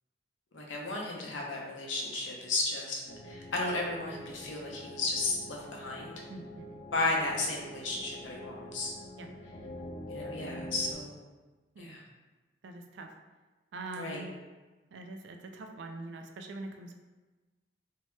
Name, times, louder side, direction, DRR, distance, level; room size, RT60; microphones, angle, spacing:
voice 1, 0.5-3.0 3.2-6.1 6.9-8.9 10.1-11.1 11.8-12.0 14.0-14.3, left 2 dB, 90° left, -2 dB, 0.7 m, -34 dB
sound 1, 3.1-10.9, left 1 dB, 55° left, 0.4 m, -45 dB
voice 2, 6.3-6.8 9.2-9.3 11.8-12.0 12.6-13.1 13.7-14.3 14.9-16.9, right 2 dB, 70° right, 5 dB, 0.3 m, -43 dB
2.7 x 2.2 x 3.1 m, 1.2 s
head